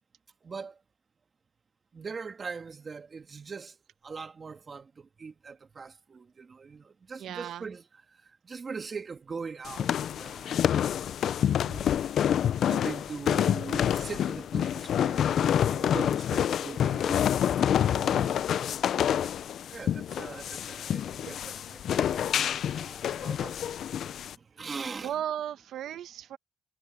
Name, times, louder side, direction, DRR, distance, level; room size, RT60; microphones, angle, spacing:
voice 1, 0.4-0.8 1.9-3.7 4.0-7.9 8.4-10.6 11.6-11.9 12.7-17.3 18.9-19.3 19.7-22.3 22.7-23.8 24.3-25.3, right 5 dB, 35° right, 2.2 m, -41 dB
voice 2, 7.2-7.7 17.9-18.4 25.0-26.4, right 10 dB, 75° right, 1.2 m, -36 dB
sound 1, 9.6-24.3, left 9 dB, 65° left, 0.5 m, -27 dB
cardioid pair, 90°, 0 cm